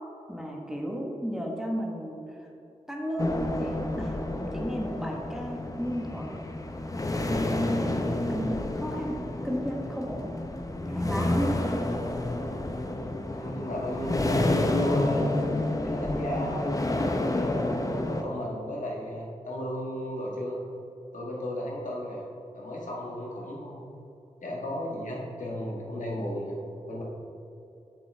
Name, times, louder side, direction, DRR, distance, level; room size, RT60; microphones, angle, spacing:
voice 1, 0.3-2.5 2.9-6.4 7.1-7.5 7.8-10.3 10.9-11.6, equal, 5° right, -1 dB, 1.2 m, -34 dB
sound 1, 3.2-18.2, left 1 dB, 25° left, 0.6 m, -29 dB
voice 2, 13.3-15.3 15.8-16.9 17.3-20.6 21.1-22.2 22.5-23.9 24.4-26.6 26.9-27.0, equal, 85° left, -3 dB, 1.5 m, -34 dB
7.5 x 7.5 x 3.4 m, 2.8 s
wide cardioid pair, 70°, 13 cm